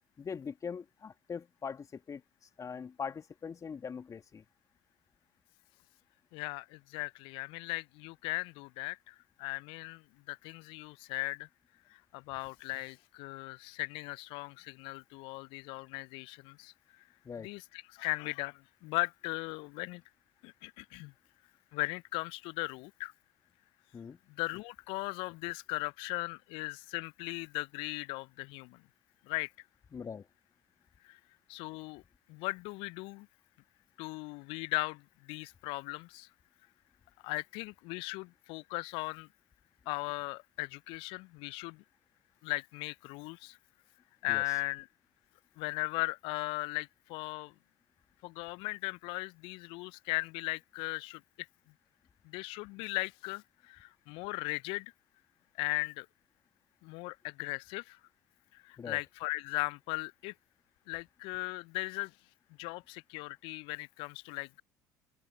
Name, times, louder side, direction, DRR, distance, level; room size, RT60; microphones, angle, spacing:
voice 1, 0.2-2.2 2.6-4.4 17.2-17.5 23.9-24.2 29.9-30.3 44.3-44.4 58.8-59.0, left 6 dB, 35° left, 2.0 m, -41 dB
voice 2, 6.3-11.5 11.9-16.7 17.4-20.0 20.4-21.1 21.7-23.1 24.3-28.8 29.3-29.5 31.0-31.2 31.5-32.0 32.3-33.3 34.0-36.3 37.2-39.3 39.9-41.8 42.4-43.6 44.2-44.9 45.6-47.5 48.2-51.2 52.2-54.9 55.6-56.1 56.8-58.0 58.5-60.3 60.9-62.1 62.6-64.6, left 26 dB, 65° left, 0.4 m, -38 dB
hypercardioid pair, 60°, 10 cm